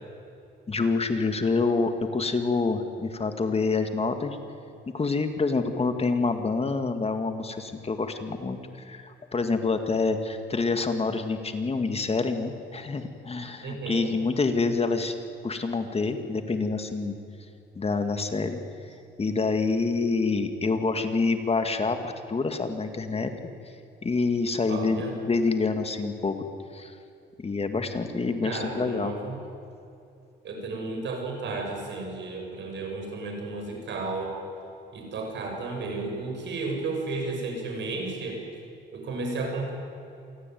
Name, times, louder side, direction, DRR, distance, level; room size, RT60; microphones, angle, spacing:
voice 1, 0.7-4.4 4.9-15.1 15.4-17.2 17.8-18.6 19.2-23.3 24.0-26.4 26.7-27.0 27.4-29.1, left 4 dB, 30° left, 7 dB, 2.1 m, -27 dB
voice 2, 13.6-14.1 24.7-25.1 28.4-29.4 30.4-34.4 34.9-38.4 38.9-39.7, right 3 dB, 65° right, 2 dB, 7.2 m, -33 dB
28.0 x 17.5 x 9.4 m, 2.7 s
cardioid pair, 90°, 20 cm